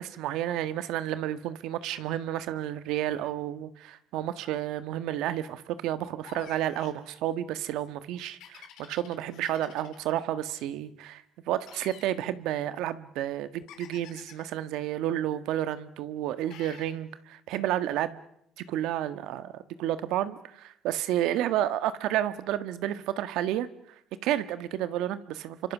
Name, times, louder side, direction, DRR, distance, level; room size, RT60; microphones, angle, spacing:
voice 1, 0.0-18.2 18.6-23.7 24.2-25.7, right 12 dB, 75° right, 12 dB, 1.5 m, -31 dB
sound 1, 6.2-7.0 8.4-10.1 11.6-12.1 13.7-14.5 16.5-16.9, left 10 dB, 75° left, 3.3 m, -49 dB
29.5 x 25.0 x 6.2 m, 0.77 s
cardioid pair, 105°, 0 cm